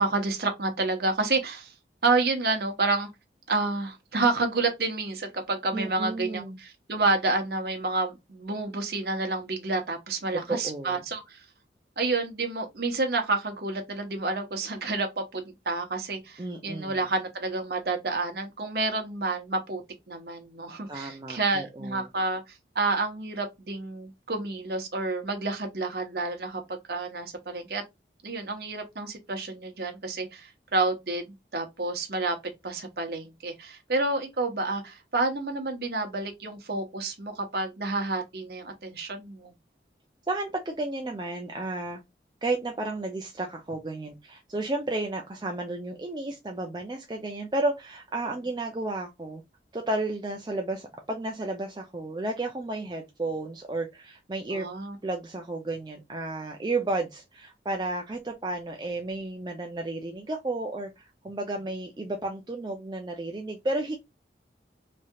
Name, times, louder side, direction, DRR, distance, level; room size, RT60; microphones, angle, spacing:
voice 1, 0.0-1.7 2.0-3.1 3.5-11.4 12.0-19.8 20.1-27.8 28.2-32.4 32.6-39.5 54.5-55.0, right 3 dB, 65° right, 0.9 m, -29 dB
voice 2, 5.7-6.6 10.3-11.0 16.4-17.0 20.9-22.1 40.3-42.0 42.4-49.4 49.7-54.7 55.0-64.0, right 2 dB, 25° right, 0.4 m, -32 dB
3.1 x 2.7 x 2.3 m
head